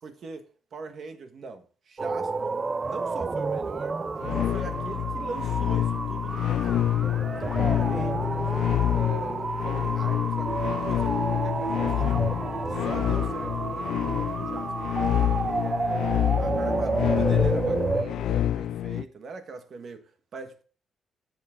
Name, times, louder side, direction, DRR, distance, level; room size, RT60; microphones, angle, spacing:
voice 1, 0.0-0.4 0.7-4.0 4.2-6.9 7.3-8.5 8.9-12.3 12.7-14.7 15.3-20.6, right 4 dB, 45° right, 1.5 m, -42 dB
sound 1, 2.0-18.0, right 4 dB, 25° right, 0.5 m, -30 dB
sound 2, 4.2-19.0, left 11 dB, 75° left, 0.4 m, -27 dB
sound 3, 10.5-16.7 17.0-17.1, right 5 dB, 60° right, 1.1 m, -38 dB
12.0 x 7.5 x 3.8 m
cardioid pair, 165°, 0 cm